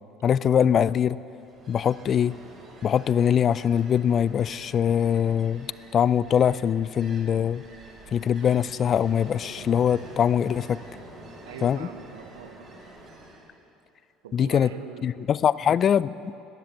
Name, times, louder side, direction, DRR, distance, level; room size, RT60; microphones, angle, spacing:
voice 1, 0.2-1.2 1.7-2.4 2.8-5.7 5.9-7.6 8.1-10.8 11.6-11.9 14.3-14.7 15.0-16.4, left 8 dB, 45° left, 19 dB, 0.3 m, -22 dB
Ocean, 1.3-13.5, right 2 dB, 45° right, 4.1 m, -47 dB
voice 2, 11.4-12.7 14.2-15.1, right 8 dB, 90° right, 8 dB, 0.7 m, -42 dB
13.0 x 10.0 x 7.8 m, 2.9 s
hypercardioid pair, 75°, 0 cm